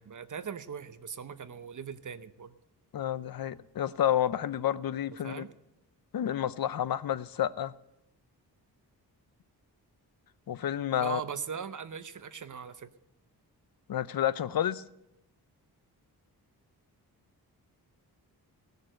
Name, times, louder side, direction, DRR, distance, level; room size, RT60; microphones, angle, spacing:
voice 1, 0.0-2.5 5.2-5.5 11.0-12.9, right 7 dB, 50° right, 0.8 m, -40 dB
voice 2, 2.9-5.5 6.1-7.7 10.5-11.2 13.9-14.8, left 11 dB, 60° left, 0.7 m, -30 dB
18.5 x 6.7 x 7.7 m
cardioid pair, 75°, 39 cm